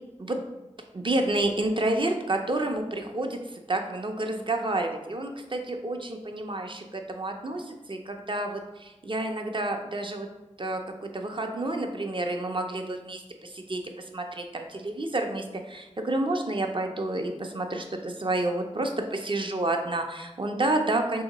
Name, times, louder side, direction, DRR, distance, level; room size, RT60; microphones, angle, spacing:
voice 1, 0.9-10.3 10.6-13.8 14.1-21.2, right 2 dB, 45° right, 4 dB, 0.5 m, -29 dB
2.9 x 2.8 x 3.9 m, 1.0 s
wide cardioid pair, 40°, 12 cm